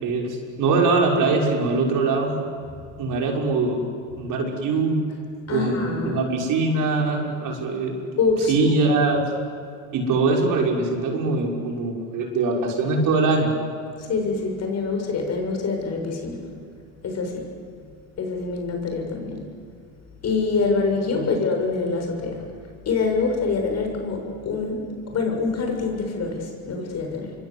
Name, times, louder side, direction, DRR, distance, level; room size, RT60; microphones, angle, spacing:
voice 1, 0.0-2.3 3.0-3.8 4.2-5.0 5.5-8.0 8.5-9.2 9.9-13.5 21.1-21.5, right 3 dB, 55° right, 0 dB, 6.0 m, -22 dB
voice 2, 5.5-6.2 8.2-8.5 14.0-16.4 17.0-17.5 18.2-19.4 20.2-22.4 22.9-27.3, left 4 dB, 40° left, 3 dB, 6.9 m, -25 dB
26.5 x 24.0 x 8.2 m, 2.3 s
supercardioid pair, 90°, 38 cm